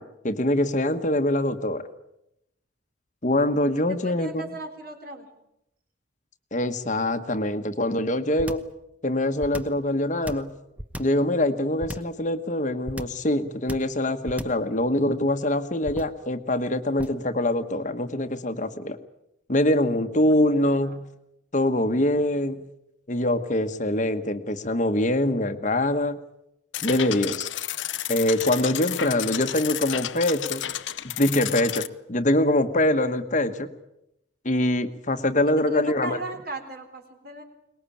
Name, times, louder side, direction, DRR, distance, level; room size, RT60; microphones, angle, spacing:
voice 1, 0.0-1.9 3.2-4.5 6.5-8.6 9.0-10.5 11.0-19.0 19.5-21.0 21.5-22.6 23.1-26.2 26.8-27.5 28.1-30.7 31.2-33.7 34.4-36.2, left 1 dB, 40° left, 8 dB, 1.3 m, -24 dB
voice 2, 4.0-5.3 20.8-21.0 35.7-37.4, right 2 dB, 50° right, 5 dB, 3.8 m, -36 dB
sound 1, 8.4-8.8 9.4-9.8 10.3-11.2 11.8-12.2 12.9-13.3 13.7-14.0 14.3-14.7 15.8-16.2 17.0-17.3, equal, 5° right, 1.0 m, -35 dB
sound 2, 26.7-31.9, left 12 dB, 80° left, 0.8 m, -31 dB
23.0 x 20.5 x 8.6 m, 0.83 s
head